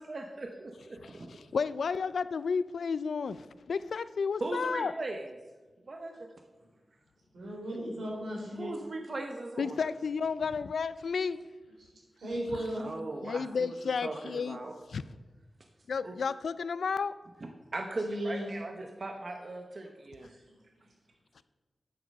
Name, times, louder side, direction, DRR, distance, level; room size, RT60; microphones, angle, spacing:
voice 1, 0.0-1.4 4.4-5.3 5.9-6.3 8.6-9.8 12.8-13.7 14.0-14.7 16.0-16.1 17.4-20.3, right 2 dB, 40° right, 3 dB, 0.8 m, -39 dB
voice 2, 1.5-4.9 9.6-11.4 13.2-14.6 14.9-15.0 15.9-17.1, left 5 dB, 85° left, 15 dB, 0.4 m, -32 dB
voice 3, 7.3-8.7 12.2-12.8 18.0-18.5, equal, 85° right, -2 dB, 3.7 m, -35 dB
9.5 x 7.5 x 5.3 m, 1.2 s
wide cardioid pair, 130°, 0 cm